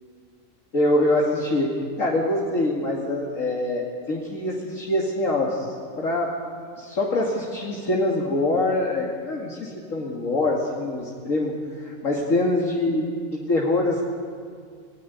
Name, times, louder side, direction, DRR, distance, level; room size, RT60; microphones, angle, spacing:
voice 1, 0.7-1.7 2.0-6.3 6.8-14.0, left 2 dB, 70° left, -3 dB, 2.8 m, -24 dB
27.5 x 18.0 x 9.5 m, 2.1 s
omnidirectional pair, 1.4 m